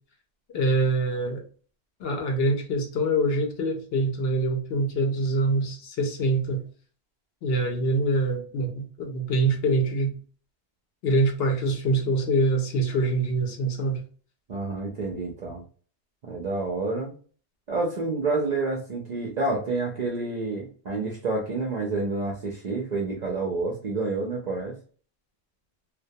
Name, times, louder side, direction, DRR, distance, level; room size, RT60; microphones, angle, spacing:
voice 1, 0.5-1.4 2.0-6.6 7.4-10.2 11.0-14.0, right 1 dB, 65° left, 3 dB, 0.7 m, -25 dB
voice 2, 14.5-15.6 16.2-17.1 17.7-24.8, right 3 dB, 55° right, -1 dB, 0.5 m, -29 dB
2.2 x 2.1 x 2.6 m, 0.42 s
omnidirectional pair, 1.2 m